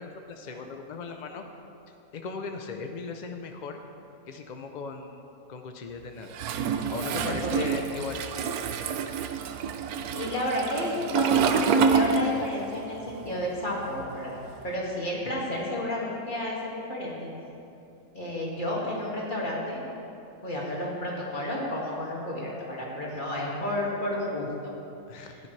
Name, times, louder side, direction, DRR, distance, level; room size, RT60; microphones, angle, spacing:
voice 1, 0.0-1.4 2.1-3.8 4.3-5.2 5.5-6.4 6.9-8.2 25.1-25.4, left 4 dB, 65° left, 5 dB, 0.4 m, -38 dB
Toilet flush, 6.3-12.8 13.0-14.6, right 6 dB, 85° right, 1.1 m, -27 dB
voice 2, 7.2-7.7 10.1-14.4 14.6-17.3 18.1-19.8 20.4-24.7 25.2-25.3, left 1 dB, 35° left, -5 dB, 2.2 m, -31 dB
15.0 x 9.9 x 3.2 m, 2.8 s
omnidirectional pair, 1.5 m